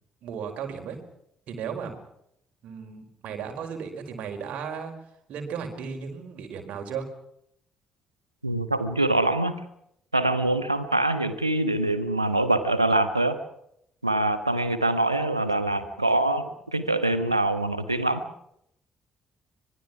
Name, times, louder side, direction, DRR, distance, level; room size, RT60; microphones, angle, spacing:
voice 1, 0.2-1.0 1.5-2.0 2.6-4.9 5.3-7.1, right 6 dB, 55° right, 4 dB, 5.1 m, -35 dB
voice 2, 8.4-9.5 10.1-13.4 14.0-18.2, right 2 dB, 90° right, 12 dB, 1.4 m, -24 dB
26.0 x 22.0 x 6.0 m, 0.75 s
figure-of-eight pair, 45°, 3 cm